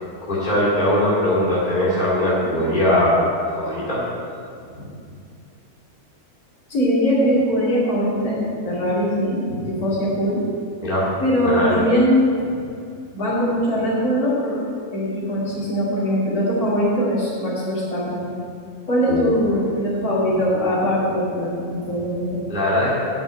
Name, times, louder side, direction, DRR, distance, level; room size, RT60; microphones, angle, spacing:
voice 1, 0.3-4.0 10.8-11.1 11.5-11.8 19.1-19.3 22.5-23.1, left 1 dB, 35° left, -8 dB, 2.5 m, -20 dB
voice 2, 6.7-8.4 8.6-10.4 11.2-12.5 13.1-14.6 14.9-18.2 18.9-22.4, equal, 85° left, -7 dB, 3.1 m, -21 dB
8.7 x 7.2 x 8.9 m, 2.4 s
omnidirectional pair, 1.5 m